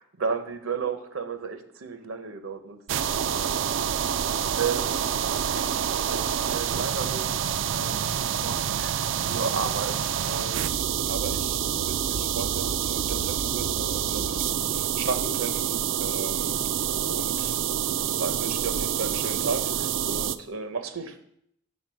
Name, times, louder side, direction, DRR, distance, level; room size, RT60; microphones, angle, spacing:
voice 1, 0.0-3.6 3.9-4.2 4.6-10.7 11.1-16.6 16.9-17.6 18.1-21.2, right 5 dB, 75° right, 8 dB, 0.8 m, -35 dB
sound 1, 2.9-20.4, right 9 dB, 60° right, 0.3 m, -27 dB
7.3 x 4.1 x 6.2 m, 0.71 s
head